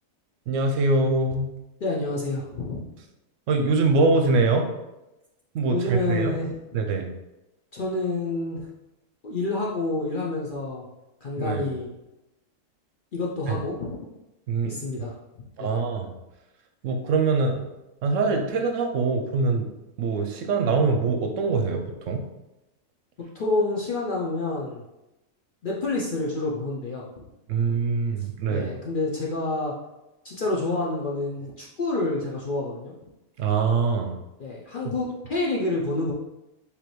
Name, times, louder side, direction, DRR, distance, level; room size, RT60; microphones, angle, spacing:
voice 1, 0.5-1.5 3.5-4.7 5.5-6.4 6.7-7.1 11.4-11.7 13.5-13.6 14.5-14.8 15.6-16.1 16.8-17.6 18.0-19.7 20.0-22.3 27.5-28.7 33.4-34.1, right 3 dB, 70° right, 5 dB, 0.9 m, -23 dB
voice 2, 1.8-2.8 5.7-6.5 7.7-8.7 9.2-10.8 11.2-11.9 13.1-13.9 14.6-15.2 15.6-15.7 23.3-24.8 25.6-27.1 28.5-29.7 30.2-32.9 34.4-36.1, left 2 dB, 50° left, -4 dB, 0.6 m, -28 dB
4.9 x 3.3 x 3.1 m, 0.96 s
omnidirectional pair, 1.4 m